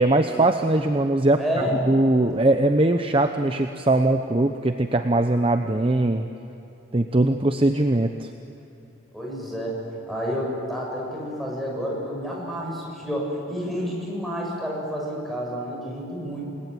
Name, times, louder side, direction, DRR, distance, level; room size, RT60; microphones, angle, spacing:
voice 1, 0.0-1.4 1.9-6.3 6.9-8.3, right 2 dB, 30° right, 6 dB, 0.8 m, -21 dB
voice 2, 1.4-1.8 9.1-9.8 10.1-16.5, equal, ahead, -3 dB, 6.9 m, -29 dB
29.0 x 20.0 x 9.3 m, 3.0 s
head